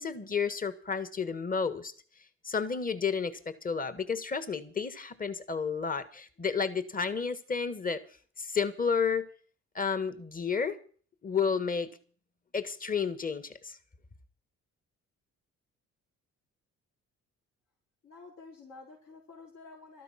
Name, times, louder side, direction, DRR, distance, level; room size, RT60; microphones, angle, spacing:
voice 1, 0.0-1.9 2.4-8.0 8.4-9.3 9.7-10.8 11.2-11.9 12.5-13.8, left 6 dB, 30° left, 1.6 m, -31 dB
voice 2, 18.0-20.0, left 3 dB, 65° left, 5.0 m, -50 dB
13.5 x 13.0 x 5.9 m
cardioid pair, 90°, 30 cm